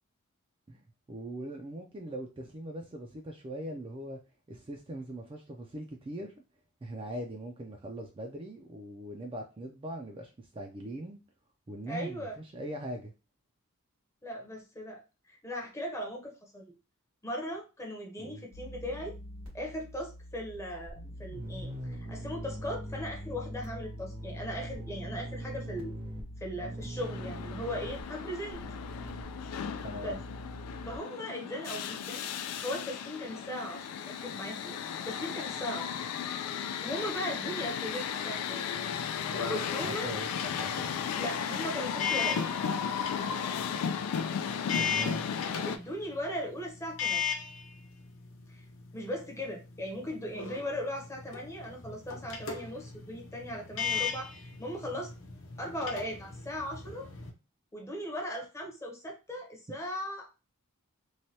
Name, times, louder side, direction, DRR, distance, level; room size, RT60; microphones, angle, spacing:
voice 1, 1.1-4.2 4.5-6.3 6.8-11.2 11.7-13.1 18.2-18.4 29.8-30.2 40.0-41.0 44.8-45.3 59.7-59.8, right 1 dB, 25° right, 1 dB, 0.4 m, -41 dB
voice 2, 11.9-12.4 14.2-16.7 17.2-19.2 19.5-25.9 26.4-28.6 30.0-30.2 30.8-32.2 32.6-34.8 35.0-36.0 36.5-38.6 39.5-40.1 41.1-42.5 45.0-45.1 45.6-47.2 48.5-48.7 48.9-55.1 55.6-57.1 57.7-60.4, equal, 15° left, 1 dB, 0.7 m, -38 dB
sound 1, 18.5-31.0, equal, 90° right, 1.4 m, -42 dB
sound 2, 27.0-45.8, left 7 dB, 90° left, 0.3 m, -35 dB
sound 3, 38.7-57.3, left 6 dB, 60° left, 0.7 m, -38 dB
3.2 x 2.2 x 2.7 m, 0.29 s
head